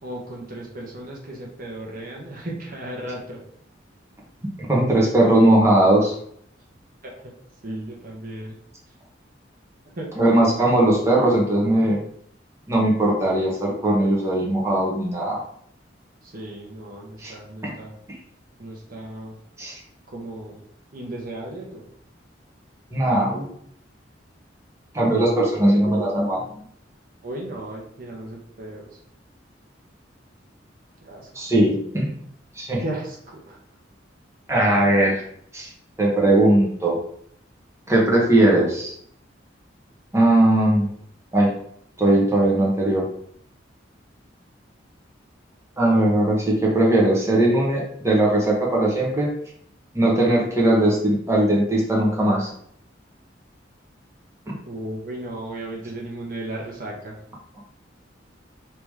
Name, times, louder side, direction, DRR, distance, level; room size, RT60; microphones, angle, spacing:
voice 1, 0.0-3.4 7.0-7.3 7.6-8.6 9.8-10.1 16.2-18.0 18.6-19.4 20.1-20.6 20.9-21.8 27.2-29.0 31.0-31.3 32.8-33.6 54.6-57.2, right 1 dB, 50° right, -2 dB, 0.9 m, -35 dB
voice 2, 4.6-6.1 10.2-12.0 12.7-15.4 17.2-17.3 17.6-17.7 19.6-19.8 22.9-23.5 24.9-26.4 31.3-32.2 32.6-32.8 34.5-35.2 35.5-35.7 36.0-37.0 37.9-38.9 40.1-40.9 41.3-41.5 42.0-43.0 45.8-49.3 49.9-52.5 54.5-54.6, right 1 dB, 15° right, -3 dB, 1.1 m, -19 dB
3.5 x 2.9 x 4.7 m, 0.65 s
head